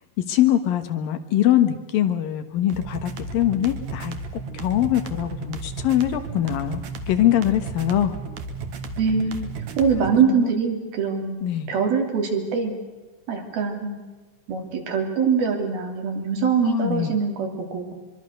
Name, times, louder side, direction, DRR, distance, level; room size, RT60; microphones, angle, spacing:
voice 1, 0.3-4.1 4.5-6.8 7.1-8.1 10.0-10.5 11.4-11.7 16.6-17.1, left 12 dB, 75° left, 9 dB, 3.0 m, -22 dB
sound 1, 2.7-10.3, right 3 dB, 55° right, 2.5 m, -34 dB
voice 2, 9.0-9.5 9.8-12.7 13.3-14.0 14.5-17.9, right 6 dB, 75° right, 3 dB, 5.0 m, -23 dB
24.5 x 23.5 x 6.7 m, 1.3 s
omnidirectional pair, 4.3 m